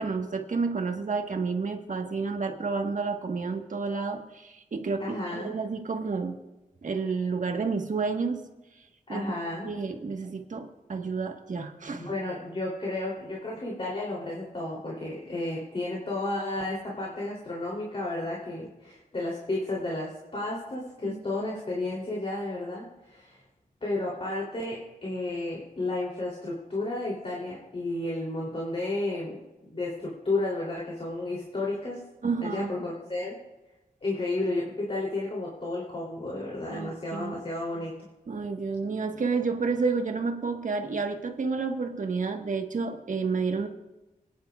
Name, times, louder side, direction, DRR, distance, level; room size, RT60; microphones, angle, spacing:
voice 1, 0.0-6.4 6.8-8.4 9.1-9.3 9.6-12.1 21.0-21.2 32.2-32.7 36.7-37.4 38.3-43.7, right 4 dB, 60° right, 4 dB, 1.4 m, -30 dB
voice 2, 5.0-5.5 9.1-9.7 12.0-23.4 23.8-29.3 29.6-32.0 32.4-33.3 34.0-37.9, left 2 dB, 40° left, -4 dB, 3.1 m, -32 dB
26.0 x 10.5 x 2.4 m, 1.0 s
wide cardioid pair, 110°, 15 cm